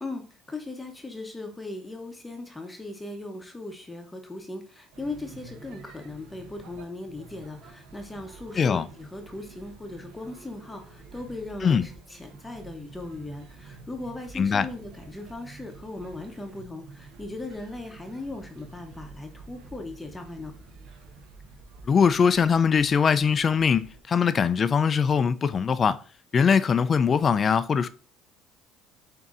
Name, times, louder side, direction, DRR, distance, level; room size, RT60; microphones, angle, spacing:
voice 1, 0.0-20.5, left 2 dB, 15° left, 0.7 m, -38 dB
sound 1, 4.9-24.0, right 4 dB, 70° right, 0.8 m, -49 dB
voice 2, 8.6-8.9 11.6-11.8 14.4-14.7 21.9-26.0 26.3-27.9, left 6 dB, 35° left, 0.3 m, -22 dB
7.0 x 2.6 x 2.5 m
supercardioid pair, 95°, 0 cm